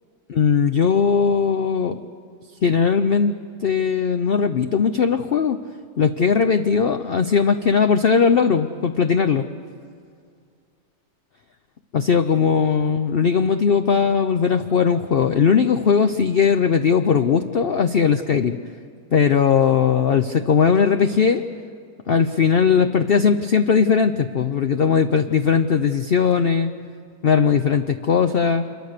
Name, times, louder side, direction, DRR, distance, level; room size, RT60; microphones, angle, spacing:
voice 1, 0.3-2.0 2.6-5.6 6.0-9.5 11.9-18.6 19.1-21.4 22.1-26.7 27.2-28.7, left 6 dB, 60° left, 8 dB, 0.6 m, -19 dB
27.0 x 23.0 x 6.7 m, 2.3 s
omnidirectional pair, 1.8 m